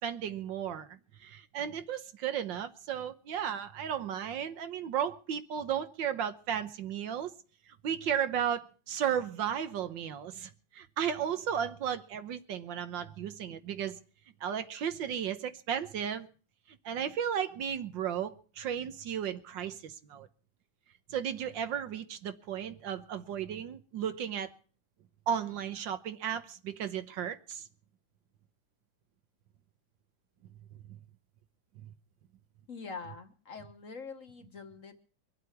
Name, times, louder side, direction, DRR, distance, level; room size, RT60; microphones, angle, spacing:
voice 1, 0.0-7.3 7.8-14.0 14.4-16.3 16.7-20.3 21.1-24.5 25.3-27.6 31.8-31.9, right 8 dB, 70° right, 1.6 m, -34 dB
voice 2, 32.7-35.0, left 5 dB, 45° left, 1.4 m, -44 dB
23.5 x 8.3 x 5.8 m
omnidirectional pair, 2.2 m